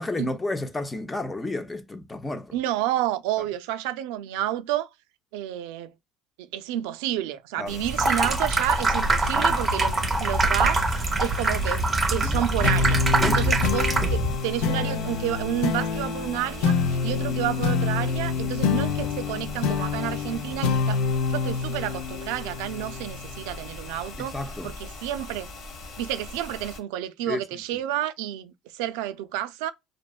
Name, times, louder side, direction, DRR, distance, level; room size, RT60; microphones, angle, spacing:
voice 1, 0.0-2.5 7.6-7.8 9.4-9.5 12.2-12.4 13.2-13.5 24.2-24.7 27.3-27.4, left 2 dB, 15° left, 0.4 m, -31 dB
voice 2, 2.5-4.9 5.3-5.9 6.5-11.8 12.1-21.0 21.3-24.4 24.6-25.5 26.0-29.7, right 12 dB, 90° right, 0.4 m, -30 dB
sound 1, 7.7-26.8, left 2 dB, 55° left, 1.0 m, -40 dB
Water tap faucet / Sink (filling or washing), 7.9-14.3, right 2 dB, 15° right, 0.7 m, -23 dB
sound 2, 12.6-23.5, left 5 dB, 80° left, 0.5 m, -27 dB
2.5 x 2.2 x 2.3 m
cardioid pair, 135°, 0 cm